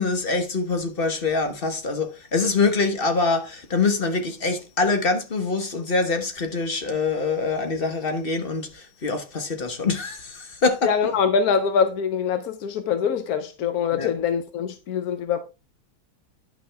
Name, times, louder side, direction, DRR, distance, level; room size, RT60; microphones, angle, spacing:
voice 1, 0.0-10.9 14.0-14.1, left 4 dB, 35° left, 1.1 m, -24 dB
voice 2, 10.8-15.4, left 6 dB, 65° left, 0.9 m, -23 dB
10.5 x 6.0 x 3.5 m
omnidirectional pair, 2.3 m